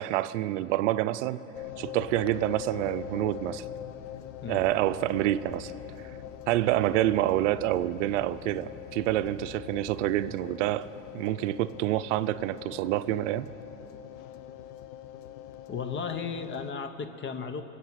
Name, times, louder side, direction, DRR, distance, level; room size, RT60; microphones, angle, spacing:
voice 1, 0.0-1.4 1.8-3.6 4.5-5.7 6.5-10.9 11.1-13.5, right 14 dB, 70° right, 13 dB, 0.6 m, -27 dB
sound 1, 1.5-16.7, left 11 dB, 70° left, 0.8 m, -43 dB
voice 2, 15.7-17.6, left 5 dB, 30° left, 10 dB, 1.0 m, -35 dB
20.5 x 8.2 x 7.5 m, 3.0 s
hypercardioid pair, 100°, 38 cm